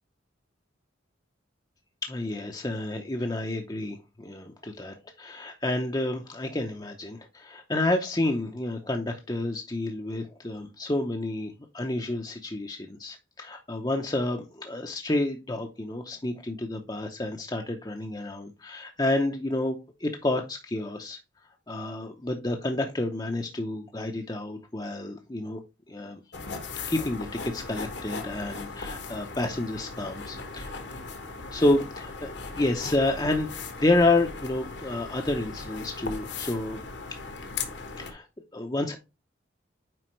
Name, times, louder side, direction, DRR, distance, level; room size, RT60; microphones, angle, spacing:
voice 1, 2.0-21.2 21.7-25.6 25.9-26.2 26.9-31.0 31.5-36.8 37.4-37.5 38.0-38.3 38.5-39.0, left 2 dB, 20° left, 0.7 m, -29 dB
sound 1, 26.3-38.1, left 4 dB, 65° left, 1.2 m, -38 dB
7.7 x 4.9 x 3.1 m
head